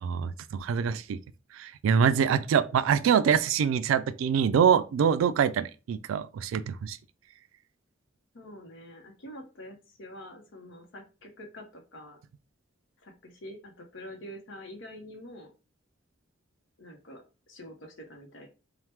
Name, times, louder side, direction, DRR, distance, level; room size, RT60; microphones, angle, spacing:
voice 1, 0.0-1.2 1.5-7.0, right 7 dB, 85° right, 0.3 m, -25 dB
voice 2, 8.3-12.2 13.0-15.5 16.8-18.5, equal, 70° left, 0.7 m, -46 dB
2.9 x 2.1 x 3.2 m
head